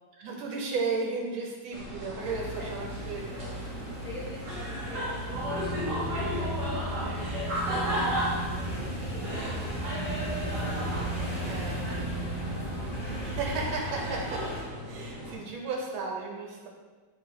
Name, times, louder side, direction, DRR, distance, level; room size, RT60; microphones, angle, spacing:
voice 1, 0.2-3.7 11.4-12.3 13.2-14.5 14.8-16.7, right 4 dB, 80° right, -1 dB, 1.4 m, -34 dB
sound 1, 1.7-15.4, equal, 60° right, 1.3 m, -35 dB
sound 2, 2.2-14.6, right 1 dB, 35° left, 0.9 m, -39 dB
voice 2, 4.0-11.5 11.8-12.8, left 3 dB, 85° left, -5 dB, 0.7 m, -45 dB
sound 3, 5.3-13.7, equal, 20° left, 1.3 m, -36 dB
3.0 x 3.0 x 4.6 m, 1.3 s
omnidirectional pair, 2.2 m